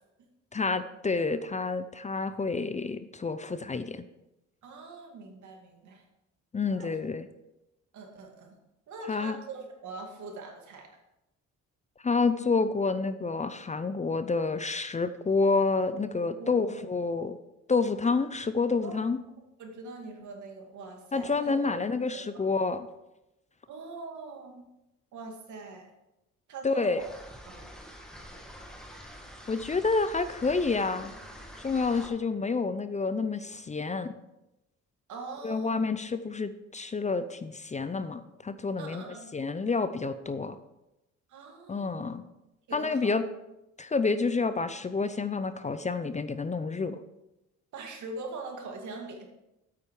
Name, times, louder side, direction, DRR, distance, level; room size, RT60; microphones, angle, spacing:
voice 1, 0.5-4.0 6.5-7.3 9.1-9.4 12.0-17.4 17.7-19.2 21.1-22.9 26.6-27.0 29.5-31.1 31.6-34.1 35.4-39.1 39.3-40.6 41.7-42.2 42.7-43.2 43.8-47.0, left 4 dB, 25° left, 12 dB, 0.6 m, -29 dB
voice 2, 4.6-6.0 6.7-6.9 7.9-8.6 8.9-10.9 16.4-16.8 18.8-18.9 19.6-21.7 22.1-22.5 23.7-24.7 25.1-25.9 26.5-27.1 27.5-27.7 35.1-35.9 38.8-39.3 41.3-42.1 42.7-43.2 47.7-49.3, right 3 dB, 75° right, 2 dB, 2.3 m, -42 dB
sound 1, 27.0-32.1, equal, ahead, 1.8 m, -46 dB
8.5 x 8.3 x 4.7 m, 0.92 s
cardioid pair, 90°, 30 cm